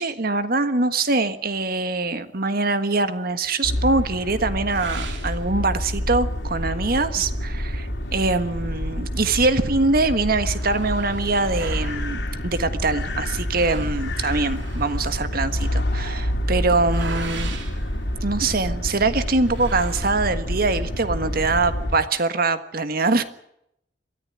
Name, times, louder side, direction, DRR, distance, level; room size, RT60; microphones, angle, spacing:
voice 1, 0.0-17.5 18.2-23.2, right 3 dB, 55° right, 11 dB, 1.6 m, -23 dB
sound 1, 3.6-22.0, equal, 70° left, 3.3 m, -28 dB
sound 2, 4.7-6.1 6.6-6.7 7.1-7.2 8.0-9.4 9.7-9.8 10.0-18.7 19.4-20.6, right 2 dB, 80° right, 3.2 m, -38 dB
23.0 x 14.0 x 9.9 m, 0.78 s
head